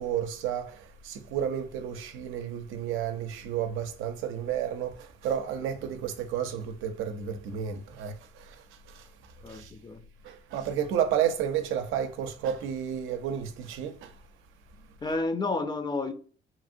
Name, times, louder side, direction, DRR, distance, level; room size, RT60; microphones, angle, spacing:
voice 1, 0.0-9.1 9.4-9.7 10.2-14.1 15.1-15.2, right 9 dB, 90° right, 0.4 m, -32 dB
voice 2, 9.4-10.0 15.0-16.1, left 3 dB, 20° left, 0.4 m, -30 dB
2.9 x 2.7 x 2.5 m
cardioid pair, 90°, 20 cm